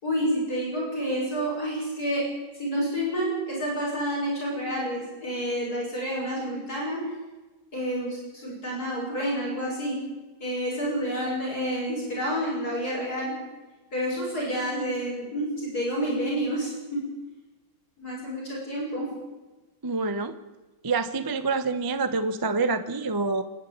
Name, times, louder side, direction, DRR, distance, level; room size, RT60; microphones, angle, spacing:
voice 1, 0.0-2.3 2.6-7.1 7.7-10.1 10.4-13.3 13.9-17.1 18.0-19.1, equal, 45° left, -4 dB, 6.8 m, -29 dB
voice 2, 19.8-20.4 20.8-23.4, right 3 dB, 25° right, 11 dB, 0.5 m, -27 dB
26.0 x 11.5 x 8.7 m, 1.2 s
omnidirectional pair, 2.3 m